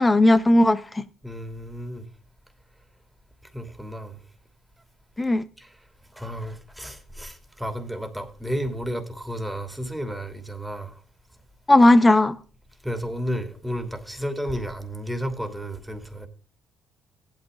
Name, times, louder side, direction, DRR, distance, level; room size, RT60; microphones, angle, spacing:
voice 1, 0.0-1.1 5.2-5.4 11.7-12.4, left 1 dB, 20° left, 1.2 m, -16 dB
voice 2, 1.2-2.0 3.5-4.1 5.6-5.7 6.1-10.9 12.8-16.3, equal, 5° right, 2.8 m, -32 dB
15.5 x 12.5 x 3.8 m
cardioid pair, 85°, 0 cm